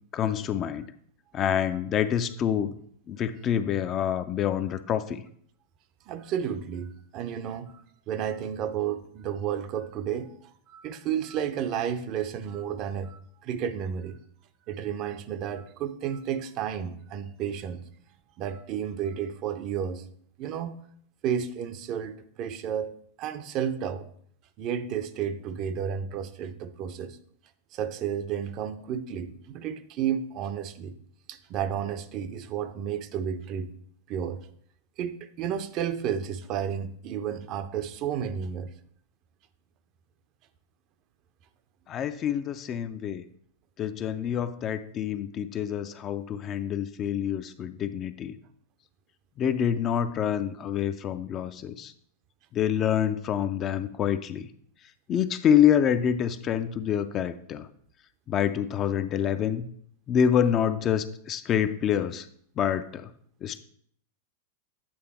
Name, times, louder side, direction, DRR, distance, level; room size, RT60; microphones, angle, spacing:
voice 1, 0.1-0.9 1.3-2.8 3.1-5.2 41.9-43.2 43.8-48.3 49.4-51.9 52.5-54.4 55.1-57.7 58.3-59.7 60.1-62.3 62.6-63.1 63.4-63.6, left 9 dB, 30° left, 11 dB, 0.4 m, -26 dB
voice 2, 6.1-14.2 14.7-17.8 18.4-20.1 20.4-20.7 21.2-22.9 23.2-24.1 24.6-27.2 27.7-31.0 31.3-33.7 34.1-34.4 35.0-38.7, right 8 dB, 40° right, 11 dB, 0.5 m, -32 dB
8.7 x 3.3 x 4.5 m, 0.64 s
figure-of-eight pair, 90°, 0 cm